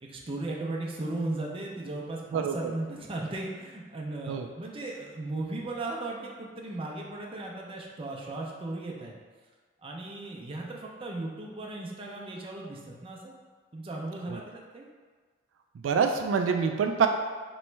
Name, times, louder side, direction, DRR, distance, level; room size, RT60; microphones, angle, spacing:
voice 1, 0.0-9.1 9.8-13.4 13.7-14.9, right 2 dB, 30° right, -1 dB, 0.6 m, -36 dB
voice 2, 15.8-17.1, right 6 dB, 85° right, 5 dB, 0.3 m, -25 dB
3.1 x 3.0 x 4.4 m, 1.5 s
head